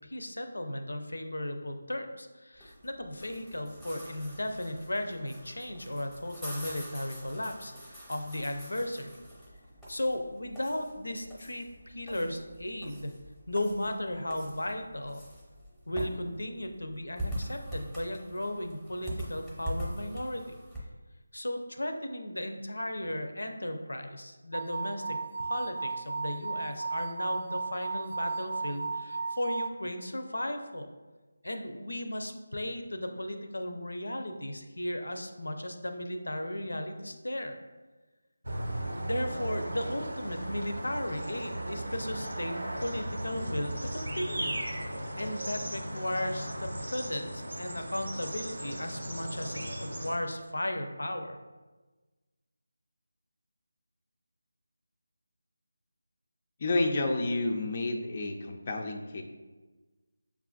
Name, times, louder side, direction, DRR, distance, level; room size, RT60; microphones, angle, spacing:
voice 1, 0.0-9.2 9.9-13.1 13.5-15.2 15.9-20.4 21.3-30.9 31.4-37.6 39.0-44.6 45.2-51.4, left 1 dB, 85° left, 6 dB, 0.5 m, -35 dB
sound 1, 2.5-20.8, equal, ahead, 0.7 m, -43 dB
sound 2, 24.5-29.7, right 4 dB, 50° right, 0.3 m, -35 dB
sound 3, 38.4-50.2, right 1 dB, 85° right, 0.7 m, -36 dB
voice 2, 56.6-59.2, left 2 dB, 35° left, 3 dB, 0.4 m, -30 dB
6.8 x 2.4 x 2.3 m, 1.3 s
figure-of-eight pair, 165°, 0 cm